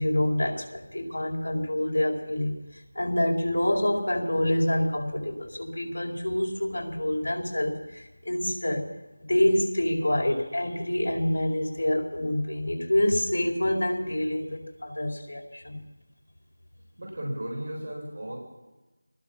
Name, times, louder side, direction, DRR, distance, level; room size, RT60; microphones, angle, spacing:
voice 1, 0.0-2.5 2.9-8.8 9.3-15.8, left 1 dB, 60° left, 3 dB, 4.7 m, -27 dB
voice 2, 17.0-18.4, equal, 35° right, -1 dB, 7.6 m, -34 dB
23.0 x 20.5 x 5.9 m, 1.1 s
figure-of-eight pair, 180°, 0 cm